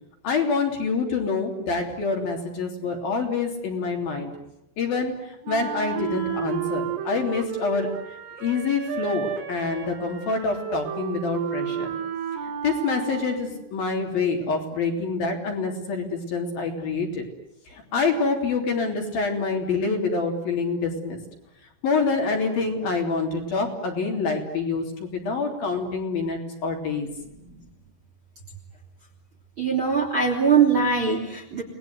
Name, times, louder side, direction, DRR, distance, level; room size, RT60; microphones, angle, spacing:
voice 1, 0.2-4.3 4.8-8.0 8.4-12.0 12.6-17.2 17.7-21.2 21.8-27.1, left 4 dB, 50° left, 2 dB, 4.8 m, -26 dB
Wind instrument woodwind instrument, 5.4-13.6, right 8 dB, 75° right, 5.3 m, -32 dB
voice 2, 27.4-27.7 29.6-31.6, right 6 dB, 30° right, 2 dB, 3.1 m, -22 dB
29.5 x 20.5 x 9.6 m, 0.82 s
omnidirectional pair, 6.0 m